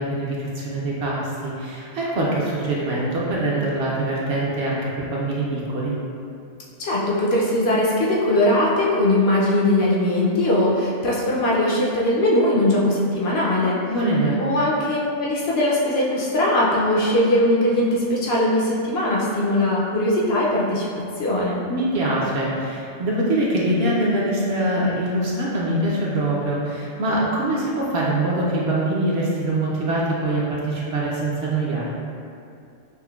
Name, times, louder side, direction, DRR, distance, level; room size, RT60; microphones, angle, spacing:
voice 1, 0.0-5.9 13.9-14.4 21.7-31.9, right 1 dB, 65° right, -5 dB, 0.7 m, -23 dB
voice 2, 6.8-13.8 14.4-21.6, left 1 dB, 65° left, -5 dB, 0.7 m, -20 dB
5.6 x 2.1 x 2.2 m, 2.5 s
omnidirectional pair, 1.3 m